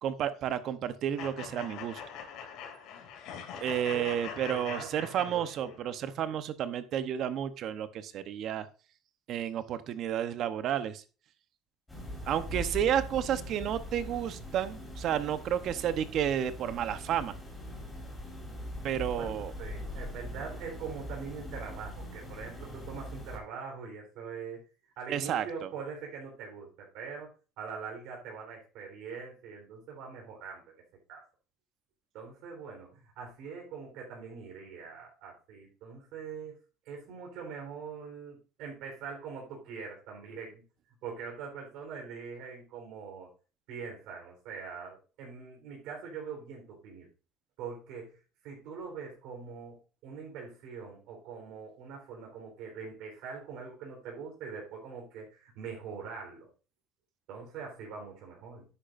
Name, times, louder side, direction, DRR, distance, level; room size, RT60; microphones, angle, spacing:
voice 1, 0.0-2.0 3.6-8.7 9.3-11.0 12.2-17.4 18.8-19.5 25.1-25.7, right 10 dB, 50° right, 12 dB, 0.9 m, -31 dB
sound 1, 1.2-5.8, left 7 dB, 70° left, 2.7 m, -43 dB
voice 2, 3.9-6.0 6.3-6.4 19.1-24.6 25.0-27.3 27.6-30.6 31.1-31.2 32.1-36.5 36.8-40.6 41.0-43.3 43.7-47.1 47.6-48.1 48.4-56.5 57.3-58.7, right 5 dB, 70° right, -1 dB, 3.9 m, -43 dB
sound 2, 11.9-23.4, left 1 dB, 10° left, 4.0 m, -41 dB
10.5 x 8.8 x 2.6 m, 0.35 s
cardioid pair, 145°, 0 cm